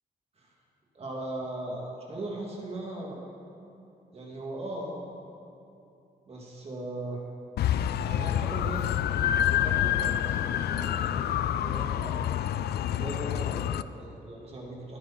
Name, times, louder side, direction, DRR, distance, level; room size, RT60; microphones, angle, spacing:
voice 1, 0.9-3.2 4.1-5.0 6.3-7.2 8.1-8.9 9.6-12.3 12.9-15.0, right 2 dB, 40° right, -2 dB, 2.5 m, -38 dB
sound 1, 7.6-13.8, left 11 dB, 75° left, 0.4 m, -27 dB
18.5 x 10.5 x 4.4 m, 2.7 s
cardioid pair, 140°, 16 cm